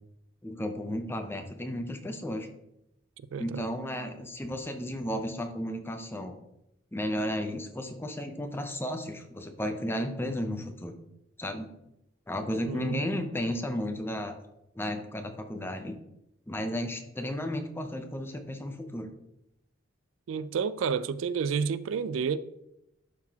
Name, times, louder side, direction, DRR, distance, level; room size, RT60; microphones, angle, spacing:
voice 1, 0.4-2.5 3.4-6.4 6.9-11.0 11.4-11.7 12.3-14.4 14.8-16.0 16.5-19.1, left 1 dB, 10° left, 0.6 m, -33 dB
voice 2, 3.3-3.7 12.7-13.2 20.3-22.4, right 6 dB, 85° right, 0.3 m, -30 dB
11.5 x 4.0 x 2.8 m
head